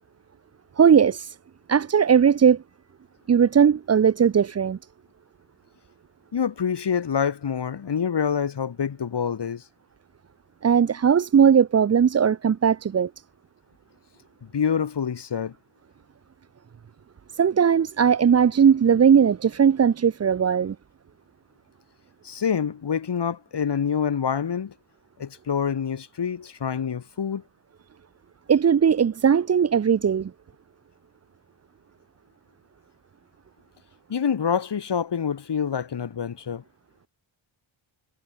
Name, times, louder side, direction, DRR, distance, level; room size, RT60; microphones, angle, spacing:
voice 1, 0.8-1.4 1.7-2.6 3.3-4.8 10.6-13.1 17.3-20.8 28.5-30.3, right 7 dB, 30° right, 0.5 m, -18 dB
voice 2, 6.3-9.6 14.4-15.5 22.2-24.7 25.2-27.4 34.1-36.6, left 7 dB, 55° left, 1.7 m, -26 dB
wide cardioid pair, 95°, 49 cm